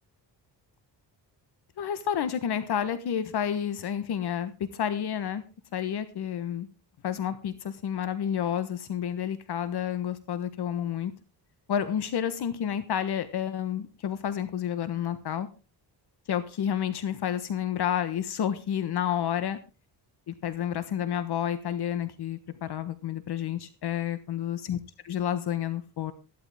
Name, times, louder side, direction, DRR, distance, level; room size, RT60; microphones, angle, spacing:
voice 1, 1.8-5.4 5.7-6.7 7.0-11.1 11.7-15.5 16.3-19.6 20.3-24.8 25.0-26.1, left 9 dB, 65° left, 12 dB, 1.3 m, -30 dB
14.5 x 12.5 x 3.5 m, 0.31 s
wide cardioid pair, 155°, 42 cm